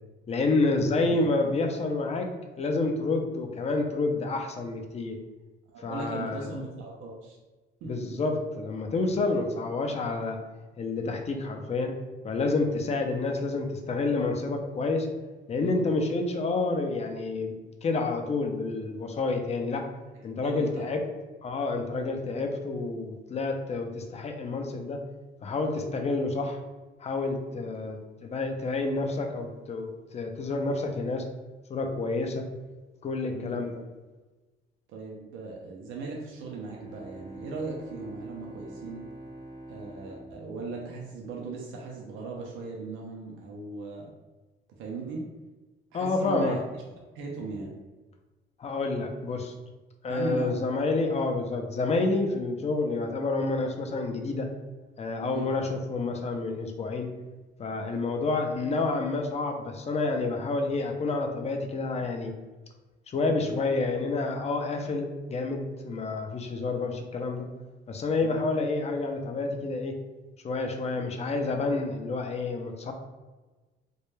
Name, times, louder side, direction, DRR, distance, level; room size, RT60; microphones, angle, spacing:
voice 1, 0.3-2.3 2.6-5.2 5.8-6.6 7.8-10.4 10.8-11.9 12.2-15.1 15.5-17.5 17.8-19.8 20.2-21.0 21.4-25.0 25.4-26.6 27.0-31.3 31.7-32.5 33.0-33.8 45.9-46.6 48.6-49.5 50.0-54.5 55.0-57.1 57.6-62.3 63.1-67.5 67.9-69.9 70.4-72.9, left 3 dB, 35° left, 3 dB, 0.4 m, -29 dB
voice 2, 5.7-7.4 7.8-8.1 9.1-9.4 15.6-15.8 20.4-20.8 27.8-27.9 33.3-33.6 34.9-39.1 39.7-44.1 44.8-45.2 45.9-46.6 47.1-47.7 50.1-51.0 55.2-55.5 63.4-63.6 68.2-68.4, right 3 dB, 85° right, -1 dB, 0.5 m, -38 dB
Bowed string instrument, 36.5-41.7, right 2 dB, 20° right, 0.5 m, -45 dB
2.2 x 2.1 x 3.0 m, 1.2 s
cardioid pair, 90°, 20 cm